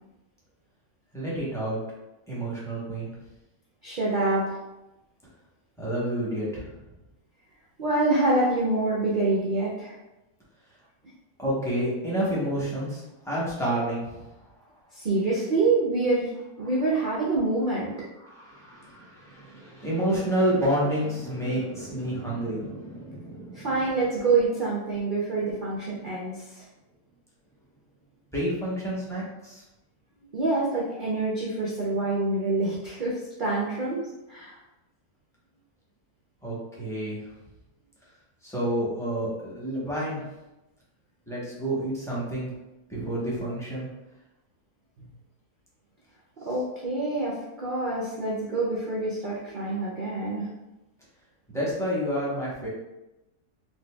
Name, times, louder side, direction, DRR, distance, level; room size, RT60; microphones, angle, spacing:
voice 1, 1.1-1.8 2.3-3.1 5.8-6.8 11.4-14.3 18.2-23.7 28.3-29.6 36.4-37.2 38.4-40.2 41.3-42.5 42.9-43.9 51.5-52.7, right 1 dB, 5° left, -8 dB, 0.6 m, -29 dB
voice 2, 3.8-4.6 7.8-9.9 14.9-16.3 16.6-17.9 23.5-26.6 30.3-34.6 46.4-50.5, right 2 dB, 70° right, -5 dB, 0.4 m, -26 dB
4.2 x 2.6 x 2.3 m, 0.98 s
omnidirectional pair, 1.7 m